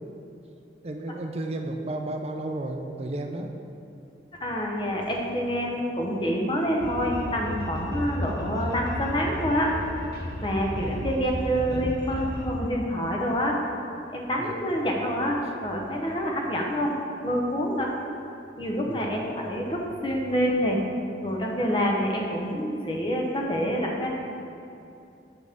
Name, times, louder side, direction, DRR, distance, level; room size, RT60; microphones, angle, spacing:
voice 1, 0.8-3.5 10.8-11.1 11.4-12.0 14.4-14.6 18.9-19.1, right 2 dB, 35° right, 4 dB, 0.5 m, -33 dB
voice 2, 4.4-9.7 10.4-13.6 14.1-16.9 17.2-17.9 18.6-20.8 21.2-24.1, equal, 25° left, -1 dB, 0.8 m, -27 dB
sound 1, 6.8-12.5, equal, 60° left, 1.3 m, -34 dB
7.8 x 6.1 x 3.6 m, 2.7 s
head